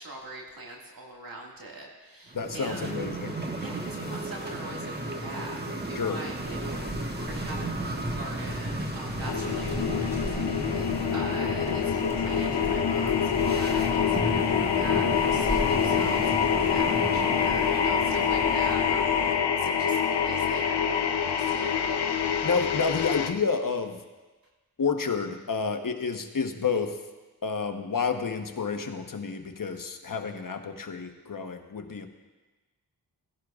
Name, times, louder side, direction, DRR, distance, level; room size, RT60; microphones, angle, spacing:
voice 1, 0.0-2.9 3.6-5.6 5.9-10.8 11.1-22.0, right 2 dB, 55° right, -2 dB, 2.1 m, -42 dB
voice 2, 2.3-3.4 5.9-6.2 22.4-24.0 24.8-27.0 27.4-32.1, left 5 dB, 55° left, 6 dB, 1.1 m, -30 dB
sound 1, 2.3-18.9, right 1 dB, 25° right, 1.5 m, -35 dB
sound 2, 6.4-19.3, equal, 5° right, 1.6 m, -40 dB
sound 3, 9.3-23.3, left 7 dB, 80° left, 0.8 m, -26 dB
17.5 x 11.5 x 2.5 m, 1.2 s
cardioid pair, 40°, 40 cm